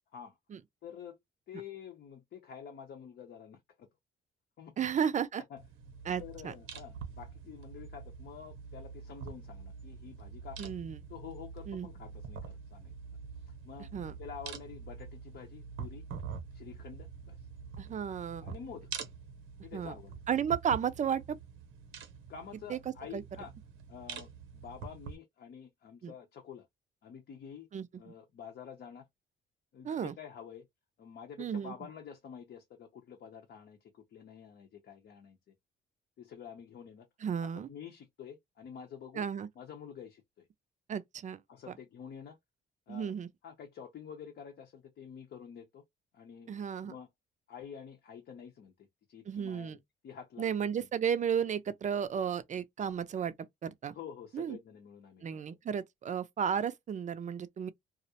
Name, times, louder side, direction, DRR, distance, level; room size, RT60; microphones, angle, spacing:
voice 1, 0.8-1.2 1.5-3.9 4.6-4.8 5.5-5.6 6.2-10.7 11.1-12.9 13.4-13.9 14.2-16.0 16.5-17.4 18.4-18.9 19.6-20.2 22.3-23.5 23.9-26.7 27.0-27.7 28.0-29.1 29.7-30.7 31.0-35.5 36.2-37.1 37.4-39.3 39.6-40.5 41.5-42.4 42.9-43.1 43.4-45.8 46.1-47.1 47.5-49.8 50.0-50.5 53.9-55.4, left 8 dB, 60° left, 0.7 m, -48 dB
voice 2, 4.8-5.4 6.1-6.5 10.6-11.0 11.7-11.9 13.9-14.1 17.8-18.4 19.7-19.9 20.3-21.4 22.7-22.8 23.1-23.2 26.0-26.1 27.7-28.1 29.8-30.1 31.4-31.7 37.2-37.7 39.2-39.5 40.9-41.4 42.9-43.3 46.5-46.9 49.3-49.8 50.4-53.3 53.6-53.9 54.3-54.6 55.2-57.7, right 8 dB, 40° right, 0.4 m, -33 dB
sound 1, 5.6-25.2, right 6 dB, 90° right, 0.7 m, -46 dB
2.4 x 2.0 x 2.7 m
cardioid pair, 90°, 20 cm